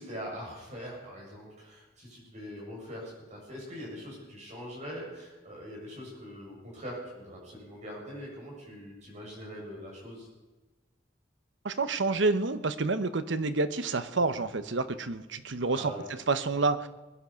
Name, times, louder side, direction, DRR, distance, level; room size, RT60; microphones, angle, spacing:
voice 1, 0.0-10.3 15.7-16.0, equal, 40° right, -2 dB, 7.5 m, -42 dB
voice 2, 11.6-15.9 16.3-16.9, right 3 dB, 70° right, 12 dB, 0.9 m, -28 dB
21.5 x 11.0 x 5.8 m, 1.2 s
head